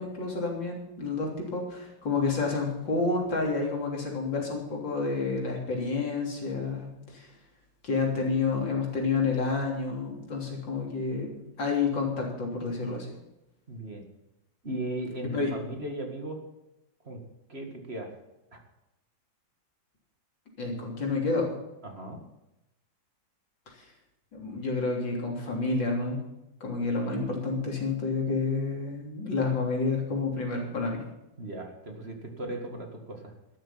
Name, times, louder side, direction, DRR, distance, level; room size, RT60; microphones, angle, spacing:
voice 1, 0.0-7.3 7.8-11.3 11.6-13.1 15.3-15.5 20.6-21.5 24.3-26.2 26.6-31.0, left 4 dB, 70° left, -1 dB, 4.1 m, -29 dB
voice 2, 13.7-14.0 14.6-16.4 17.0-17.2 17.5-18.1 18.5-18.6 21.8-22.2 31.4-33.6, right 1 dB, 35° right, 3 dB, 2.2 m, -37 dB
13.0 x 12.5 x 5.8 m, 0.93 s
omnidirectional pair, 2.1 m